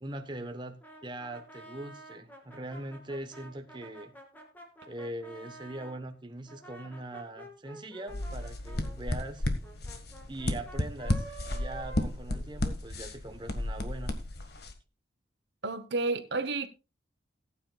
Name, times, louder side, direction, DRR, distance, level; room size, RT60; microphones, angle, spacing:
voice 1, 0.0-4.1 4.9-9.5 10.3-14.2, right 1 dB, 25° right, 1.0 m, -41 dB
Brass instrument, 0.8-6.0 6.5-12.8, right 1 dB, 10° left, 2.5 m, -50 dB
sound 1, 8.1-14.7, left 1 dB, 55° left, 1.7 m, -33 dB
voice 2, 15.6-16.7, right 3 dB, 60° right, 0.9 m, -31 dB
19.0 x 9.3 x 2.3 m
head